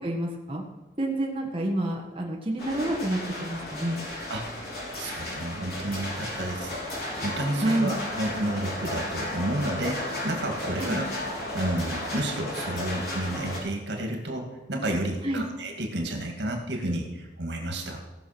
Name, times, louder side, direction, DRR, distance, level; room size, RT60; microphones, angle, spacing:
voice 1, 0.0-0.6 1.0-4.0 7.6-7.9 10.8-11.0 15.2-15.4, right 1 dB, 30° right, -1 dB, 1.5 m, -28 dB
sound 1, 2.6-13.6, left 1 dB, 60° left, 4.1 m, -34 dB
voice 2, 5.0-6.7 7.2-11.1 11.5-18.0, right 1 dB, 80° right, 2 dB, 2.2 m, -31 dB
17.0 x 6.0 x 6.0 m, 1.2 s
head